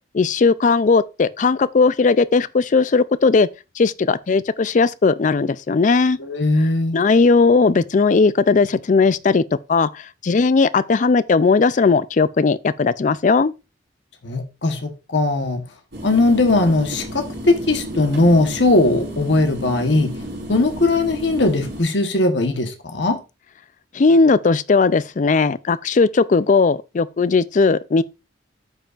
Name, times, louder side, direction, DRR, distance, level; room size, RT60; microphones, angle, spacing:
voice 1, 0.1-3.5 3.8-6.2 6.9-9.4 9.7-13.5 23.9-28.0, left 4 dB, 45° left, 0.4 m, -17 dB
voice 2, 6.2-7.0 14.2-15.6 16.0-20.2 20.5-23.2, left 2 dB, 75° left, 1.2 m, -19 dB
sound 1, 15.9-21.8, equal, 80° right, 4.2 m, -32 dB
13.0 x 5.3 x 2.5 m
head